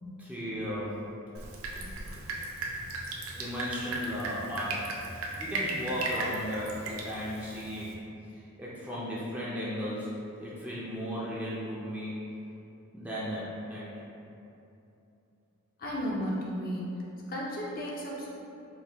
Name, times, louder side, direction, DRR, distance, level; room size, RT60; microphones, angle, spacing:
voice 1, 0.2-1.0 3.4-8.0 8.3-12.3 12.9-14.1, equal, 5° right, -8 dB, 0.5 m, -36 dB
Drip, 1.3-7.9, right 2 dB, 75° right, 0.5 m, -36 dB
voice 2, 15.8-16.9 17.3-18.4, equal, 40° left, -5 dB, 0.6 m, -34 dB
4.6 x 2.3 x 3.4 m, 2.8 s
head